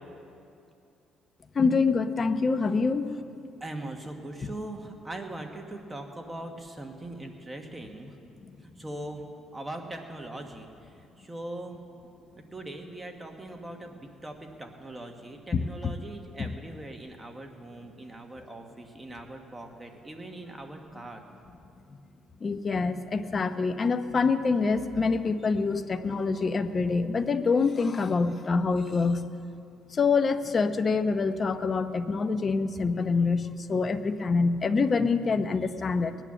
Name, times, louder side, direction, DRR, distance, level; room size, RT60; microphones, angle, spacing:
voice 1, 1.5-3.2 15.5-15.9 22.4-29.3 29.9-36.2, left 4 dB, 30° left, 9 dB, 0.7 m, -26 dB
voice 2, 3.6-8.2 8.6-9.2 9.5-11.8 12.4-21.2, right 1 dB, 15° right, 3 dB, 1.4 m, -41 dB
20.0 x 9.1 x 7.4 m, 2.6 s
cardioid pair, 120°, 0 cm